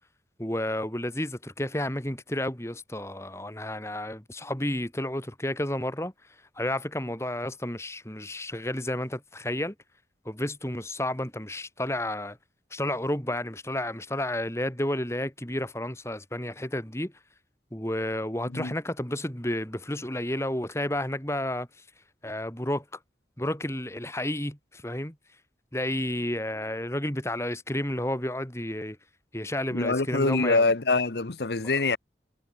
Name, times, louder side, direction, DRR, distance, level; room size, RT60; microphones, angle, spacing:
voice 1, 0.4-6.1 6.6-9.7 10.2-12.4 12.7-17.1 17.7-21.7 22.2-22.8 23.4-25.2 25.7-29.0 29.3-30.7, left 1 dB, 15° left, 2.9 m, -31 dB
voice 2, 29.7-32.0, left 3 dB, 70° left, 1.1 m, -24 dB
head